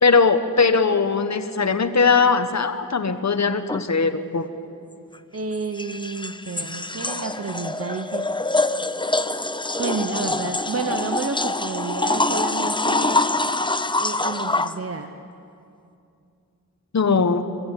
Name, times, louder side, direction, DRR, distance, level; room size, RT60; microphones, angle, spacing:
voice 1, 0.0-4.5 16.9-17.4, left 4 dB, 55° left, 9 dB, 1.2 m, -20 dB
sound 1, 3.7-3.8 5.5-14.8, left 2 dB, 15° left, 0.6 m, -25 dB
voice 2, 5.3-8.3 9.8-13.2 14.0-15.1, right 4 dB, 45° right, 6 dB, 1.0 m, -30 dB
23.5 x 15.0 x 8.5 m, 2.5 s
wide cardioid pair, 85°, 34 cm